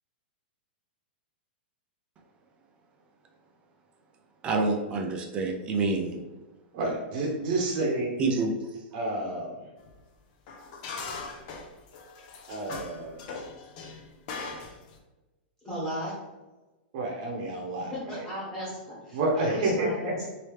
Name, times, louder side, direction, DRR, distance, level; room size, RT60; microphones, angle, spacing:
voice 1, 4.4-6.2 8.2-8.5, right 3 dB, 20° right, 2 dB, 0.3 m, -27 dB
voice 2, 6.7-8.3 8.9-9.7 12.5-13.3 16.9-18.2 19.1-20.3, right 2 dB, 45° right, -2 dB, 0.9 m, -30 dB
sound 1, 9.8-9.9 10.5-15.0, left 4 dB, 45° left, 0.5 m, -40 dB
voice 3, 15.6-16.1 17.9-20.3, equal, 10° left, -9 dB, 1.5 m, -35 dB
3.2 x 2.8 x 3.1 m, 1.1 s
supercardioid pair, 160°, 6 cm